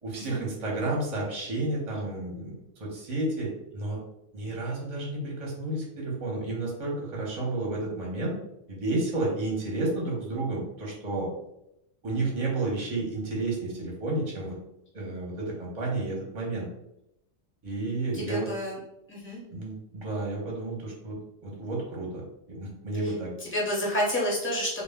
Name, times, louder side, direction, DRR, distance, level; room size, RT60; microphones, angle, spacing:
voice 1, 0.0-4.0 4.3-8.4 8.7-11.3 12.0-14.6 14.9-16.7 17.6-18.5 19.5-21.2 21.4-22.2 22.5-23.3, right 2 dB, 35° right, -3 dB, 0.7 m, -31 dB
voice 2, 18.1-18.8 19.1-19.4 23.4-24.8, equal, 15° left, -5 dB, 0.5 m, -29 dB
2.1 x 2.1 x 3.4 m, 0.84 s
omnidirectional pair, 1.3 m